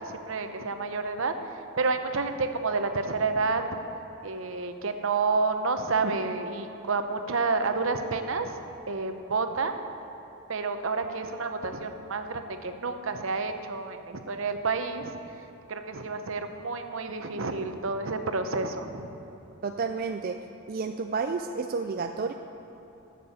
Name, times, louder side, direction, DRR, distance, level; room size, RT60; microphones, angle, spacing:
voice 1, 0.0-3.6 4.2-9.7 10.5-15.2 15.7-19.2, right 4 dB, 70° right, 7 dB, 0.8 m, -29 dB
voice 2, 19.6-20.4 20.7-22.3, right 4 dB, 45° right, 6 dB, 0.3 m, -30 dB
10.5 x 7.6 x 6.9 m, 2.9 s
head